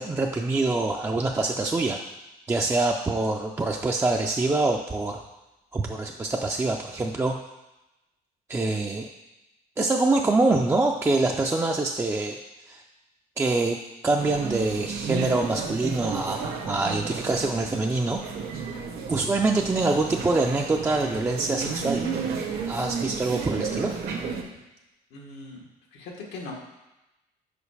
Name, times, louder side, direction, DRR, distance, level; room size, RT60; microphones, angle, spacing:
voice 1, 0.0-2.0 2.5-5.2 5.7-7.4 8.5-9.1 9.8-12.4 12.7-12.8 13.4-13.8 14.0-18.2 19.1-22.1 22.7-23.9, right 2 dB, 15° right, 1 dB, 0.4 m, -25 dB
sound 1, 14.2-24.4, right 5 dB, 70° right, 1.0 m, -33 dB
voice 2, 25.1-26.5, left 3 dB, 90° left, -1 dB, 1.4 m, -41 dB
5.1 x 4.8 x 4.8 m, 1.0 s
cardioid pair, 110°, 17 cm